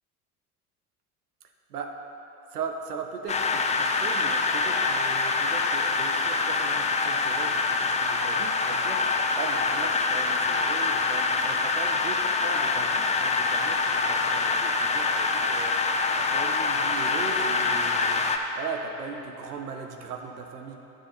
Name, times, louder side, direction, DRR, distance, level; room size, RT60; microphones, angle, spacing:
voice 1, 2.5-20.8, right 5 dB, 85° right, 4 dB, 0.8 m, -38 dB
sound 1, 3.3-18.4, left 4 dB, 15° left, 0.5 m, -25 dB
9.0 x 6.2 x 5.5 m, 2.9 s
hypercardioid pair, 65°, 45 cm